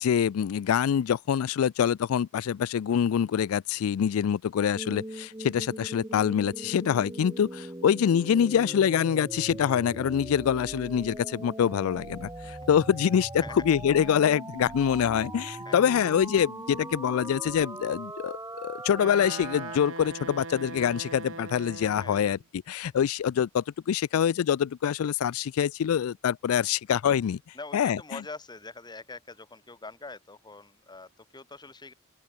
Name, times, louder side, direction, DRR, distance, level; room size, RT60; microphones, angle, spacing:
voice 1, 0.0-28.2, left 8 dB, 85° left, 0.3 m, -25 dB
sound 1, 4.8-19.8, right 1 dB, 15° right, 1.7 m, -40 dB
Wind instrument woodwind instrument, 18.9-22.4, right 3 dB, 70° right, 3.1 m, -41 dB
voice 2, 27.5-31.9, left 3 dB, 20° left, 1.7 m, -44 dB
open air
head